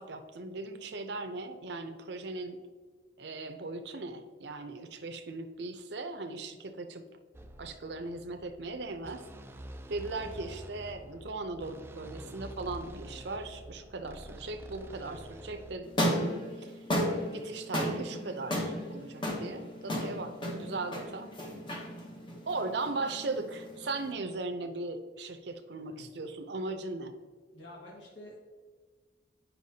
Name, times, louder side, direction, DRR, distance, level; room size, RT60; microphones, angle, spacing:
voice 1, 0.0-2.6 3.2-7.0 7.6-9.2 9.9-16.7 17.0-21.3 22.5-27.1, right 3 dB, 65° right, 8 dB, 0.6 m, -38 dB
sound 1, 7.3-15.8, right 1 dB, 10° right, 0.3 m, -47 dB
sound 2, 15.8-24.1, equal, 25° left, 0.9 m, -34 dB
voice 2, 27.5-28.4, left 1 dB, 75° left, -4 dB, 1.7 m, -48 dB
9.3 x 5.6 x 2.8 m, 1.5 s
head